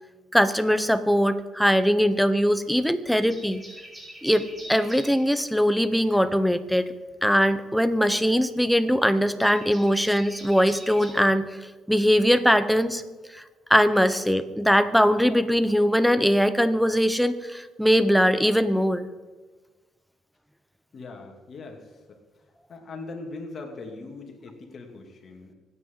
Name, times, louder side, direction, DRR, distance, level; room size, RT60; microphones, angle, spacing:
voice 1, 0.3-3.6 4.2-6.9 7.2-11.5 11.9-13.0 13.3-13.4 13.7-19.1, equal, ahead, 11 dB, 1.0 m, -21 dB
sound 1, 2.1-2.8 3.1-5.3 6.9-11.1, equal, 15° right, 5.5 m, -45 dB
voice 2, 20.9-22.2 22.7-25.5, left 3 dB, 50° left, 2 dB, 2.8 m, -40 dB
25.0 x 9.7 x 4.0 m, 1.3 s
cardioid pair, 90°, 0 cm